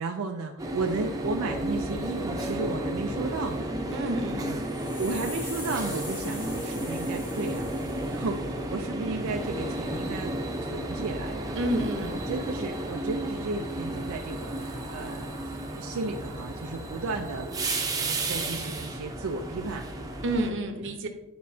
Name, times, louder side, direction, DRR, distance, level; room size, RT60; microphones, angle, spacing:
voice 1, 0.0-3.7 4.5-4.6 5.0-10.3 10.6-11.5 12.0-19.8 20.9-21.0, right 3 dB, 85° right, 3 dB, 0.5 m, -34 dB
sound 1, 0.6-20.5, right 1 dB, 15° right, 0.7 m, -33 dB
voice 2, 3.9-4.5 11.6-12.1 20.2-21.1, right 1 dB, 60° right, 5 dB, 0.9 m, -29 dB
sound 2, 4.4-8.6, left 2 dB, 80° left, 2.5 m, -43 dB
9.4 x 5.2 x 2.7 m, 1.1 s
head